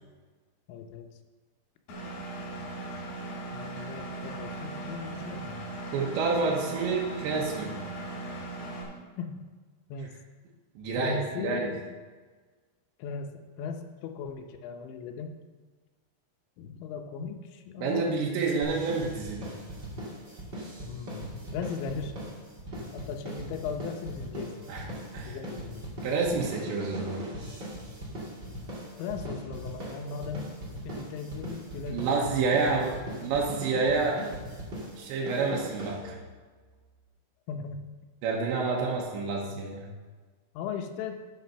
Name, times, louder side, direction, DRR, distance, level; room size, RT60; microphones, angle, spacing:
voice 1, 0.7-1.1 3.5-5.7 9.2-9.4 9.9-10.2 11.0-11.9 13.0-15.4 16.6-18.2 20.8-22.2 22.9-24.7 25.3-25.9 29.0-30.6 30.8-32.3 33.1-33.2 37.5-38.0 38.8-39.1 40.5-41.2, left 5 dB, 90° left, 5 dB, 3.2 m, -38 dB
Engine, 1.9-8.8, right 2 dB, 60° left, 4.1 m, -38 dB
voice 2, 5.9-7.7 10.8-11.7 17.8-19.5 24.7-24.9 25.1-25.4 26.0-27.2 31.9-33.0 33.2-34.2 35.0-36.2 38.2-39.9, right 4 dB, 90° right, -1 dB, 3.4 m, -28 dB
sound 1, 18.6-36.4, right 1 dB, 35° right, 2.0 m, -39 dB
9.3 x 6.7 x 5.7 m, 1.4 s
omnidirectional pair, 5.1 m